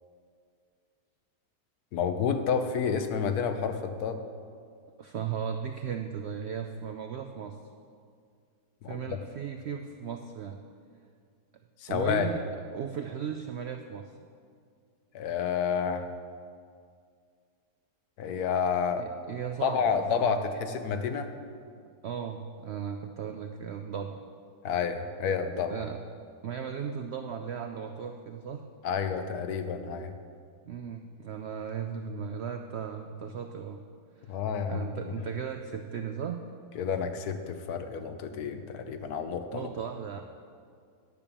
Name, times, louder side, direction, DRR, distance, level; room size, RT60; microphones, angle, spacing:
voice 1, 1.9-4.2 8.8-9.0 11.8-12.3 15.1-16.1 18.2-19.1 19.6-21.3 24.6-25.8 28.8-30.1 34.3-35.0 36.7-39.7, left 6 dB, 75° left, 8 dB, 1.3 m, -30 dB
voice 2, 5.0-7.6 8.9-10.6 11.9-12.4 12.7-14.1 19.0-19.8 20.2-20.3 22.0-24.2 25.7-26.0 26.4-28.6 30.7-33.8 34.2-34.4 34.7-36.5 39.5-40.2, right 7 dB, 75° right, 5 dB, 0.6 m, -36 dB
10.5 x 7.0 x 6.9 m, 2.2 s
omnidirectional pair, 1.7 m